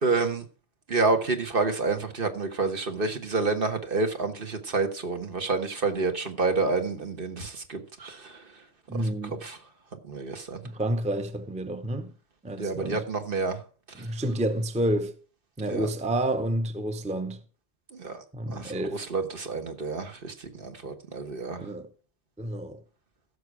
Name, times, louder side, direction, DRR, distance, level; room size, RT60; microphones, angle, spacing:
voice 1, 0.0-0.4 0.9-8.4 8.9-9.1 9.4-9.6 10.0-10.6 12.6-13.6 14.0-14.1 15.6-15.9 17.9-21.7, right 3 dB, 60° right, 1.5 m, -29 dB
voice 2, 8.9-9.4 10.6-12.1 12.4-13.0 14.0-15.2 15.6-17.4 18.3-19.1 21.6-21.9 22.4-22.8, right 1 dB, 10° right, 0.6 m, -29 dB
15.0 x 6.6 x 4.8 m
omnidirectional pair, 1.1 m